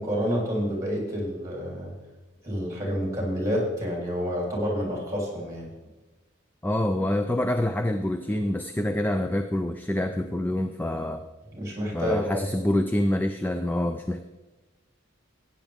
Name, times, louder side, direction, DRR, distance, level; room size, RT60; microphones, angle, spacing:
voice 1, 0.0-1.9 2.4-5.7 11.5-12.4, equal, 15° right, -3 dB, 3.4 m, -28 dB
voice 2, 6.6-11.2 11.9-14.2, left 1 dB, 10° left, 8 dB, 0.3 m, -26 dB
15.5 x 9.1 x 3.6 m, 1.1 s
head